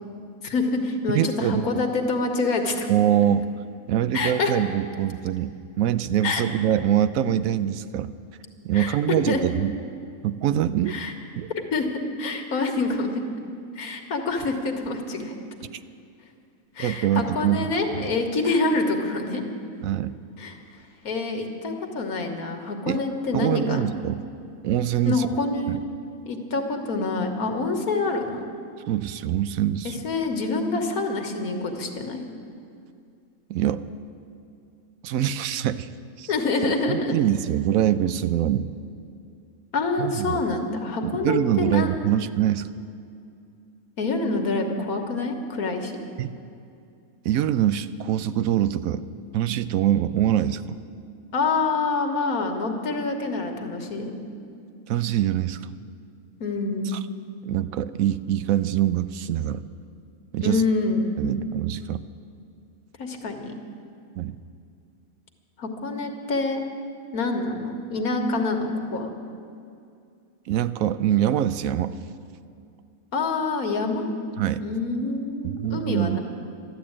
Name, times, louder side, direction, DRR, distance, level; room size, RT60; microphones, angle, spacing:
voice 1, 0.4-2.9 4.1-4.5 6.2-6.4 8.7-9.0 9.3-9.4 10.9-11.1 11.7-11.9 12.2-13.1 13.8-15.4 16.8-19.4 20.4-20.6 21.0-24.0 25.1-25.8 26.3-28.5 29.8-32.2 36.3-37.2 39.7-41.9 44.0-45.9 51.3-54.1 56.4-56.9 60.4-61.1 63.0-63.5 65.6-66.6 67.1-69.1 73.1-74.1 74.6-76.2, left 3 dB, 90° left, 4 dB, 1.8 m, -26 dB
voice 2, 1.1-1.7 2.9-3.4 3.9-8.1 8.6-9.7 10.2-11.0 11.4-11.5 16.8-17.6 17.9-18.1 19.8-20.2 22.9-23.0 23.3-24.2 24.6-25.3 25.7-25.8 28.9-30.0 33.5-33.8 35.0-35.9 36.2-36.3 36.9-38.7 40.0-40.4 41.0-42.7 46.2-46.3 47.2-49.1 49.3-50.8 54.9-55.7 56.9-57.0 57.4-59.6 60.3-60.6 61.2-62.0 64.1-64.4 70.5-71.9 74.4-74.6 75.4-76.2, right 11 dB, 75° right, 13 dB, 1.0 m, -24 dB
13.0 x 11.5 x 8.7 m, 2.4 s
omnidirectional pair, 1.5 m